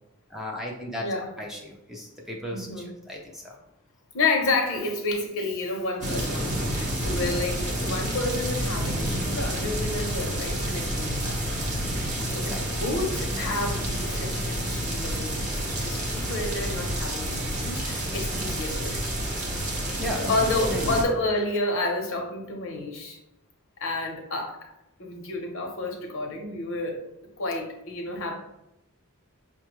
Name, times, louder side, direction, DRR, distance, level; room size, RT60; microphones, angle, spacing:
voice 1, 0.3-1.1 1.4-3.6 12.4-12.8 20.0-20.8, left 1 dB, ahead, -1 dB, 0.5 m, -35 dB
voice 2, 0.9-1.3 2.5-2.9 4.1-11.7 12.0-19.0 20.3-23.2 23.8-24.6 25.0-27.0 27.4-28.3, left 2 dB, 65° left, 1 dB, 0.8 m, -30 dB
sound 1, 6.0-21.0, right 1 dB, 35° right, 0.8 m, -29 dB
5.5 x 2.2 x 3.0 m, 0.87 s
head